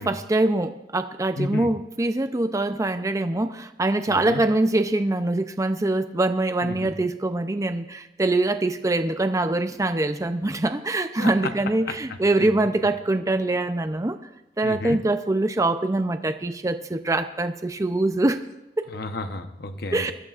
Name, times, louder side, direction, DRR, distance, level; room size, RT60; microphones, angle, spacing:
voice 1, 0.0-14.2 14.6-18.4 18.8-18.9 19.9-20.1, right 2 dB, 20° right, 9 dB, 0.5 m, -24 dB
voice 2, 1.4-1.7 4.1-4.4 6.6-6.9 11.2-11.5 11.9-12.5 14.6-15.0 18.9-20.1, left 2 dB, 60° left, 7 dB, 1.0 m, -32 dB
22.0 x 13.5 x 2.5 m, 0.95 s
head